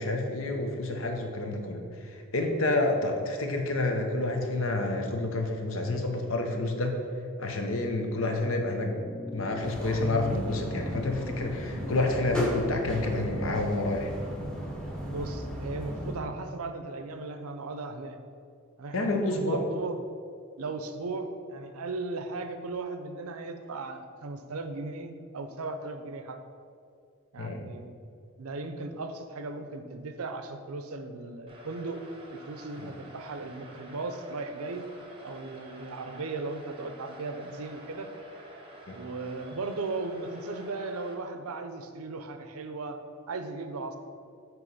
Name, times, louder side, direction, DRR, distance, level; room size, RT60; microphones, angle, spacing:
voice 1, 0.0-7.0 7.4-8.9 9.3-14.1 18.9-19.6 27.4-27.7 32.8-32.9 38.9-39.0, left 2 dB, 70° left, 3 dB, 0.8 m, -29 dB
sound 1, 8.5-17.2 18.4-18.5, left 2 dB, 30° left, 0.3 m, -46 dB
sound 2, 9.6-16.2, equal, 5° left, 0.8 m, -35 dB
voice 2, 15.1-18.2 18.8-20.0 20.6-26.4 27.3-28.0 28.4-32.0 32.3-34.8 35.2-38.1 38.9-43.0 43.3-44.0, right 3 dB, 85° right, 7 dB, 0.6 m, -37 dB
sound 3, 31.5-41.1, right 1 dB, 25° right, 0.7 m, -49 dB
8.2 x 3.1 x 5.3 m, 2.3 s
head